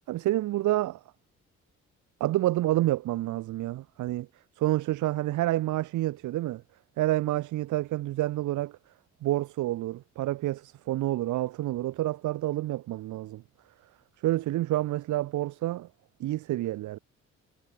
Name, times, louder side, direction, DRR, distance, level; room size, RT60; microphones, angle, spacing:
voice 1, 0.1-1.0 2.2-4.3 4.6-6.6 7.0-8.8 9.2-13.4 14.2-15.9 16.2-17.0, right 15 dB, 75° right, 0.9 m, -28 dB
cardioid pair, 90°, 30 cm